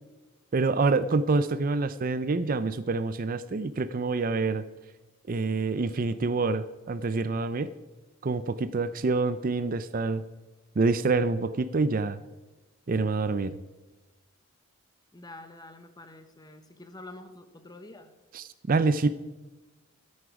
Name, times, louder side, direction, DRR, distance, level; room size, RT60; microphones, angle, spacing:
voice 1, 0.5-4.6 5.3-7.7 8.2-10.2 10.8-12.2 12.9-13.6 18.3-19.1, right 3 dB, 40° right, 13 dB, 0.4 m, -26 dB
voice 2, 15.1-18.1, left 2 dB, 20° left, 9 dB, 1.0 m, -47 dB
13.5 x 9.8 x 4.8 m, 1.2 s
head